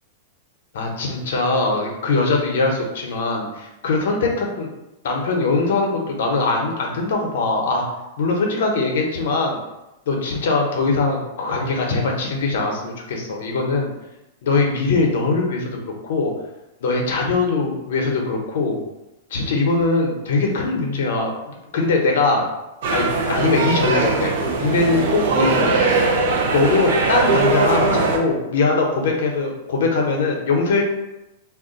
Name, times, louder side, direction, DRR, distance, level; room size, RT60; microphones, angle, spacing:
voice 1, 0.7-4.7 5.0-7.8 8.2-9.6 10.1-13.9 14.4-16.3 16.8-18.8 19.3-22.4 22.9-24.3 24.6-25.8 26.5-30.8, left 3 dB, 65° left, 1 dB, 0.7 m, -21 dB
sound 1, 22.8-28.2, right 3 dB, 55° right, 0.5 m, -20 dB
2.3 x 2.1 x 3.8 m, 0.94 s
supercardioid pair, 175°, 0 cm